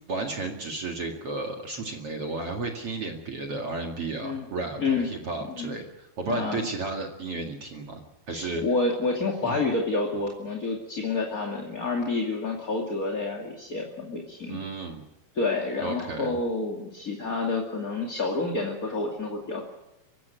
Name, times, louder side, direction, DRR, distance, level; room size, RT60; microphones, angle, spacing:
voice 1, 0.1-8.0 8.3-8.6 9.4-9.6 14.5-15.0 15.8-16.3, right 3 dB, 45° right, 2 dB, 2.7 m, -33 dB
voice 2, 4.8-5.1 5.5-5.8 6.3-6.6 8.3-14.6 15.3-19.6, left 3 dB, 25° left, 1 dB, 2.4 m, -29 dB
25.5 x 15.0 x 9.4 m, 0.93 s
omnidirectional pair, 4.2 m